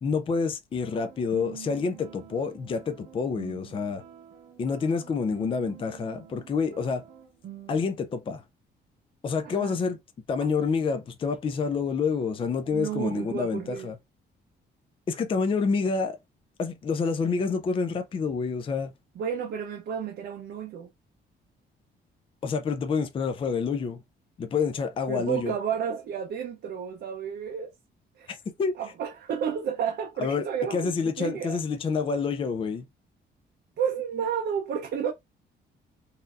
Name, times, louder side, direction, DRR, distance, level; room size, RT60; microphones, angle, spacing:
voice 1, 0.0-4.0 4.6-7.0 7.7-8.4 9.2-10.0 10.3-14.0 15.1-16.2 16.6-18.9 22.4-24.0 24.4-25.5 28.3-28.8 30.2-30.4 30.7-32.9, left 5 dB, 30° left, 0.4 m, -28 dB
sound 1, 0.8-7.8, right 11 dB, 90° right, 1.1 m, -47 dB
voice 2, 9.4-9.8 12.7-13.9 19.2-20.9 25.1-27.7 28.2-28.3 28.8-31.6 33.8-35.1, right 8 dB, 65° right, 0.6 m, -31 dB
4.1 x 2.6 x 2.4 m
cardioid pair, 140°, 19 cm